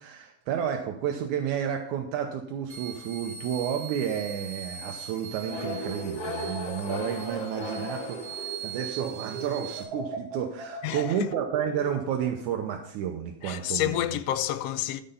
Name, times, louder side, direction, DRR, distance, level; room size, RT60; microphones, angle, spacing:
voice 1, 0.0-8.2 8.6-14.2, right 8 dB, 80° right, 2.2 m, -31 dB
sound 1, 2.7-9.8, right 7 dB, 5° right, 2.3 m, -41 dB
sound 2, 5.5-9.0, left 2 dB, 45° left, 2.2 m, -37 dB
sound 3, 5.8-9.0 9.3-12.3, right 4 dB, 60° right, 2.5 m, -39 dB
voice 2, 10.8-11.1 13.4-15.0, left 12 dB, 75° left, 1.5 m, -29 dB
13.0 x 5.4 x 5.6 m
omnidirectional pair, 3.4 m